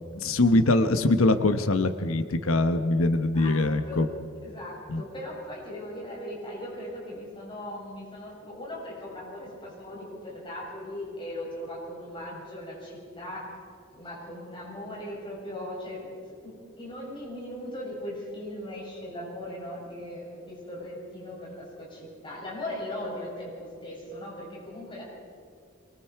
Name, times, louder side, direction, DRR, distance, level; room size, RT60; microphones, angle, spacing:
voice 1, 0.1-4.1 4.9-5.0, left 2 dB, 75° left, 9 dB, 1.0 m, -23 dB
voice 2, 4.4-13.5 13.9-16.2 16.4-25.0, left 1 dB, 25° left, -5 dB, 7.2 m, -39 dB
24.0 x 23.5 x 4.7 m, 2.3 s
head